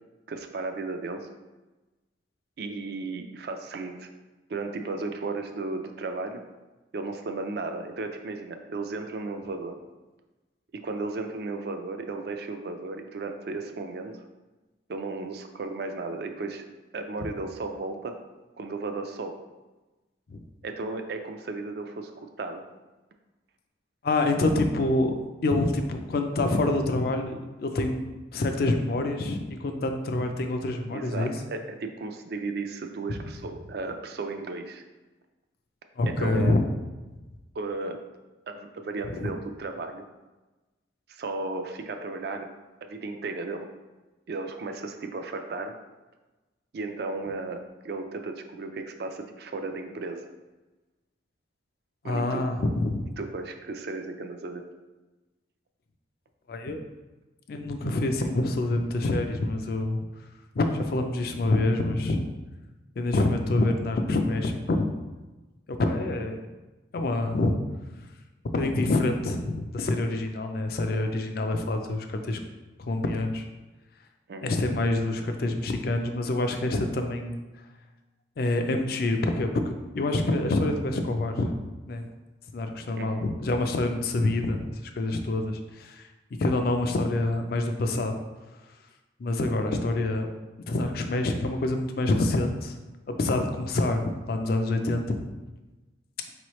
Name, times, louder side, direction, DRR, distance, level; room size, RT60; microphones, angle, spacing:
voice 1, 0.3-1.3 2.6-4.1 4.5-6.4 6.9-9.8 10.8-14.2 14.9-16.6 16.9-18.1 18.6-19.3 20.6-22.6 30.9-34.8 36.1-36.6 37.5-38.0 38.5-40.0 41.1-42.5 42.8-43.7 44.3-45.7 46.7-47.6 47.8-50.3 52.0-52.4 53.2-54.6 74.3-74.6 82.9-83.3, right 3 dB, 55° right, 6 dB, 0.4 m, -34 dB
voice 2, 24.0-25.1 25.4-28.0 28.3-31.3 33.1-33.2 36.0-36.7 39.1-39.3 52.0-53.0 56.5-56.8 57.5-60.0 60.6-62.2 63.0-64.9 65.7-66.4 66.9-67.5 68.5-72.4 72.8-73.5 74.4-77.4 78.4-81.5 81.9-82.1 82.5-86.1 86.4-88.1 89.2-90.3 90.7-92.8 93.1-95.2, left 2 dB, 50° left, 5 dB, 0.4 m, -26 dB
4.7 x 3.1 x 3.0 m, 1.2 s
head